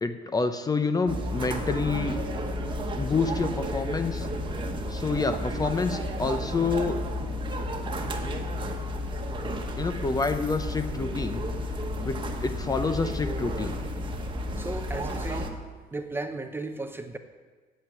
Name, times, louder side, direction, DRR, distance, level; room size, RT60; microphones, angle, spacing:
voice 1, 0.0-2.2 3.0-4.3 4.9-7.0 9.8-11.4 12.0-13.8, left 4 dB, 20° left, 8 dB, 0.7 m, -28 dB
sound 1, 1.1-15.5, equal, 30° right, 1.3 m, -32 dB
voice 2, 14.6-15.6 15.9-17.2, right 2 dB, 15° right, 7 dB, 0.7 m, -35 dB
8.6 x 7.6 x 8.6 m, 1.4 s
cardioid pair, 110°, 17 cm